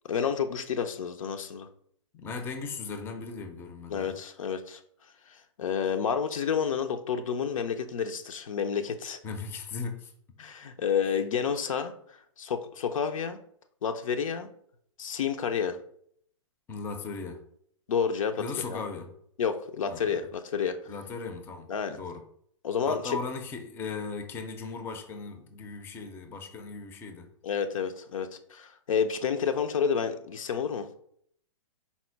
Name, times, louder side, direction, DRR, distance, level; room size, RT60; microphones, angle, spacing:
voice 1, 0.0-1.7 3.9-4.8 5.3-9.2 10.4-11.9 12.4-13.4 13.8-14.5 15.0-15.8 17.9-18.8 19.4-20.8 21.7-22.0 22.6-23.2 27.4-30.9, left 7 dB, 90° left, 7 dB, 0.6 m, -30 dB
voice 2, 2.1-4.1 9.2-10.1 11.1-11.2 16.7-17.4 18.4-19.1 19.9-20.1 20.9-22.2 22.9-27.3, left 4 dB, 15° left, 6 dB, 0.4 m, -37 dB
4.2 x 2.1 x 4.4 m, 0.65 s
hypercardioid pair, 145°, 17 cm